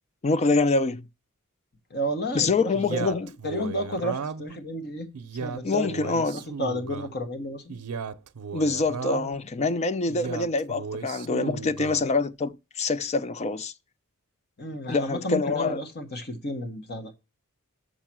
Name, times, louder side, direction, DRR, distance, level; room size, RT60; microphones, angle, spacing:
voice 1, 0.2-1.1 2.3-3.3 5.6-6.4 8.5-13.7 14.9-15.8, left 3 dB, 30° left, 0.4 m, -25 dB
voice 2, 1.9-5.1 5.4-5.9 6.3-7.7 14.6-17.1, equal, 50° left, 1.2 m, -32 dB
Male speech man speaking, 2.7-4.6 5.1-7.1 7.7-9.4 10.1-12.1, right 5 dB, 90° right, 0.6 m, -35 dB
6.4 x 5.6 x 6.0 m
head